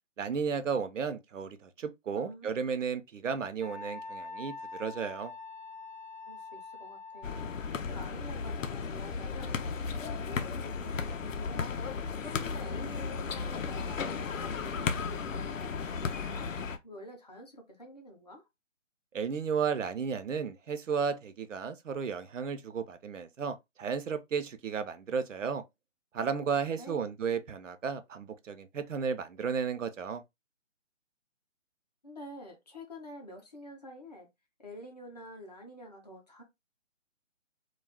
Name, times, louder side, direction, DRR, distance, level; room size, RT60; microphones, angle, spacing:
voice 1, 0.2-5.3 19.1-25.6 26.1-30.2, right 6 dB, 75° right, 0.6 m, -33 dB
voice 2, 2.1-2.6 6.3-7.4 7.9-11.7 12.2-16.5 16.8-18.5 26.5-27.1 32.0-34.3 34.6-36.4, left 1 dB, 35° left, 0.6 m, -48 dB
Wind instrument woodwind instrument, 3.6-7.7, left 3 dB, 30° right, 0.4 m, -44 dB
sound 1, 7.2-16.8, left 5 dB, 90° left, 0.6 m, -35 dB
2.3 x 2.0 x 3.3 m
figure-of-eight pair, 165°, 38 cm